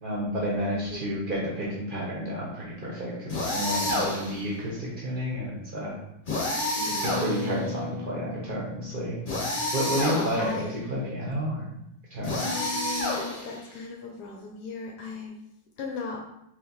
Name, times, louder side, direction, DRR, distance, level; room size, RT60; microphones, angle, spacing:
voice 1, 0.0-5.9 7.0-9.2 9.7-10.6 10.9-11.7 12.1-12.5, equal, 55° right, -4 dB, 0.5 m, -31 dB
voice 2, 0.7-1.1 6.8-7.3 10.0-10.8 12.3-15.4 15.8-16.2, left 4 dB, 75° left, 1 dB, 1.0 m, -37 dB
sound 1, 3.3-4.4 6.3-7.7 9.3-10.5 12.2-13.7, left 1 dB, 45° left, 0.6 m, -29 dB
sound 2, 7.0-12.0 12.3-12.4, left 1 dB, 70° right, 1.1 m, -38 dB
3.2 x 3.1 x 3.9 m, 0.81 s
omnidirectional pair, 2.2 m